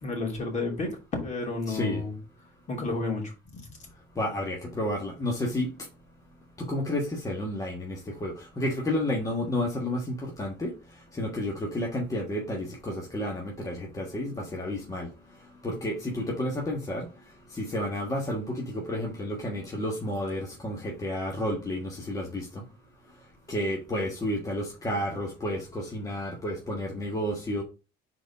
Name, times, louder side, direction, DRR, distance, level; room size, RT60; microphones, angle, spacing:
voice 1, 0.0-2.2 2.7-3.6, left 3 dB, 45° left, 1 dB, 2.9 m, -31 dB
voice 2, 1.7-2.0 4.2-5.7 6.6-10.7 11.1-15.1 15.6-17.1 17.5-22.6 23.5-27.6, left 1 dB, 20° left, 0 dB, 1.4 m, -31 dB
4.7 x 4.0 x 5.3 m, 0.31 s
cardioid pair, 115°, 18 cm